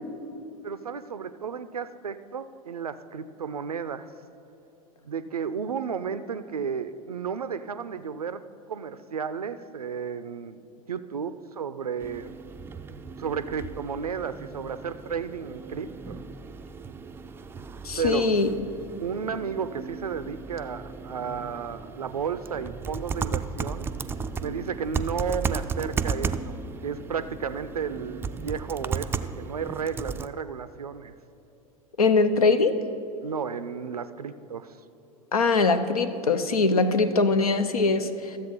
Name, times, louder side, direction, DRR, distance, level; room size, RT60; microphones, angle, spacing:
voice 1, 0.6-4.1 5.0-8.4 8.7-10.6 10.9-12.3 13.2-16.2 18.0-18.3 19.0-23.9 24.4-29.1 29.4-31.1 33.2-34.7, right 6 dB, 90° right, 13 dB, 0.4 m, -33 dB
sound 1, 12.0-30.3, right 5 dB, 10° right, 0.4 m, -35 dB
voice 2, 17.8-18.5 32.0-32.7 35.3-38.4, left 3 dB, 80° left, 10 dB, 0.7 m, -22 dB
13.0 x 7.6 x 5.4 m, 3.0 s
figure-of-eight pair, 85°, 19 cm